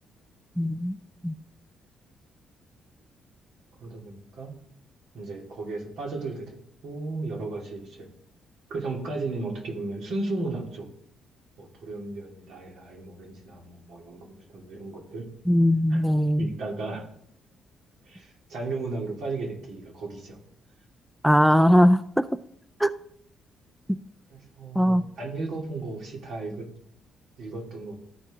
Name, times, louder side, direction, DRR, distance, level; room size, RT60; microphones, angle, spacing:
voice 1, 0.6-1.0 1.2-1.3 15.5-16.5 21.2-22.3 22.8-22.9 24.8-25.1, equal, ahead, 11 dB, 0.3 m, -20 dB
voice 2, 3.8-4.5 5.1-8.1 8.7-10.9 11.6-15.3 15.9-16.0 16.4-17.1 18.1-20.4 24.3-26.7 27.4-27.9, right 3 dB, 70° right, -1 dB, 2.5 m, -35 dB
13.5 x 4.5 x 3.6 m, 0.71 s
cardioid pair, 90°, 0 cm